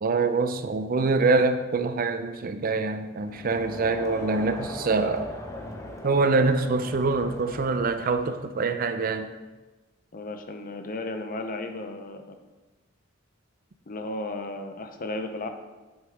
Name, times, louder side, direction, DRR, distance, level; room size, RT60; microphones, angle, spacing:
voice 1, 0.0-5.3 6.0-9.3, right 3 dB, 45° right, 9 dB, 0.5 m, -25 dB
Crowd, 3.2-8.4, left 1 dB, 15° left, 0.8 m, -39 dB
voice 2, 10.1-12.2 13.9-15.5, left 2 dB, 45° left, 6 dB, 0.8 m, -34 dB
9.0 x 7.1 x 3.6 m, 1.2 s
head